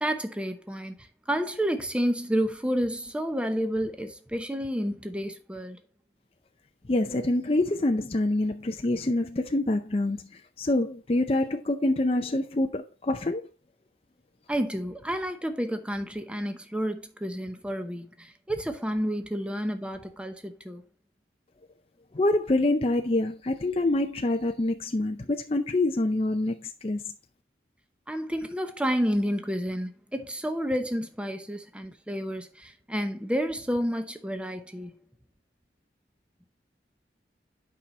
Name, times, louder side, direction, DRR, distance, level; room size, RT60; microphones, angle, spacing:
voice 1, 0.0-0.9 1.3-5.8 14.5-20.8 28.1-34.9, equal, 5° right, 0.8 m, -30 dB
voice 2, 6.9-13.4 22.1-27.0, left 2 dB, 30° left, 0.5 m, -26 dB
8.6 x 5.6 x 4.3 m
head